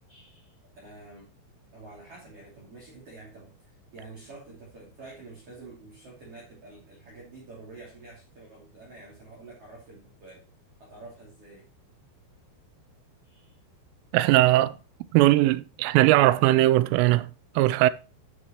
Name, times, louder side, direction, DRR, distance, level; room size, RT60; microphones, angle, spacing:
voice 1, 0.1-0.6 0.8-1.3 1.7-10.5 10.8-11.6 13.2-13.6, right 3 dB, 35° right, 2.9 m, -48 dB
voice 2, 14.1-14.8 15.1-17.9, right 16 dB, 85° right, 3.1 m, -20 dB
12.5 x 6.5 x 2.9 m
omnidirectional pair, 5.7 m